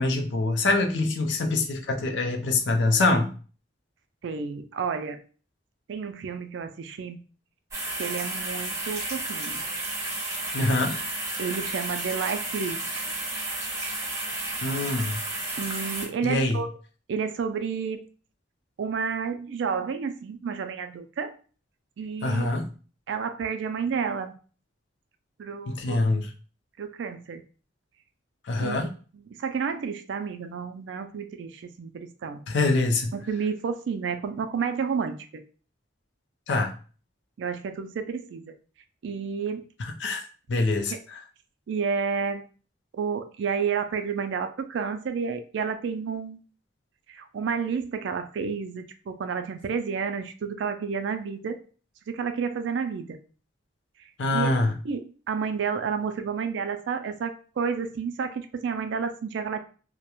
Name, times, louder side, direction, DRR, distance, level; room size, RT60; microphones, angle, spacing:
voice 1, 0.0-3.3 10.5-11.0 14.6-15.2 16.2-16.6 22.2-22.7 25.7-26.3 28.5-28.9 32.5-33.1 36.5-36.7 39.8-40.2 40.5-41.2 54.2-54.7, left 2 dB, 65° left, 0.5 m, -24 dB
voice 2, 4.2-5.2 5.9-7.2 8.0-9.6 11.4-12.8 15.6-16.7 17.1-18.0 18.8-21.3 22.0-22.5 23.1-24.3 25.4-26.0 26.8-27.4 28.6-28.9 29.1-32.4 33.1-35.4 37.4-38.6 39.0-39.6 40.9-41.0 41.7-42.4 43.0-46.4 47.1-51.6 52.1-53.2 54.3-54.5 54.8-59.6, right 6 dB, 70° right, 0.3 m, -30 dB
sound 1, 7.7-16.1, right 2 dB, 15° right, 0.5 m, -32 dB
2.3 x 2.1 x 2.9 m
head